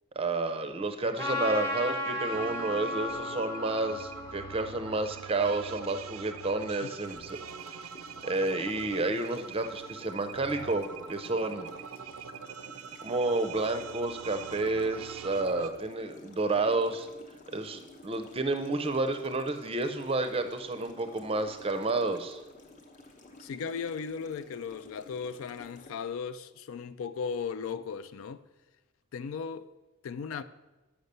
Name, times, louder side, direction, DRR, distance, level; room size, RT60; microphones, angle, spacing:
voice 1, 0.2-7.4 7.7-7.8 8.2-11.7 13.0-17.1 17.5-22.4, right 2 dB, 25° right, 0.5 m, -30 dB
Trumpet, 1.2-5.8, left 1 dB, 15° left, 1.2 m, -35 dB
sound 1, 2.2-15.7, right 6 dB, 75° right, 0.5 m, -44 dB
sound 2, 7.0-25.9, left 2 dB, 35° left, 0.8 m, -53 dB
voice 2, 23.4-28.4 29.1-29.7 30.0-30.4, left 6 dB, 65° left, 0.3 m, -36 dB
6.7 x 5.6 x 6.7 m
head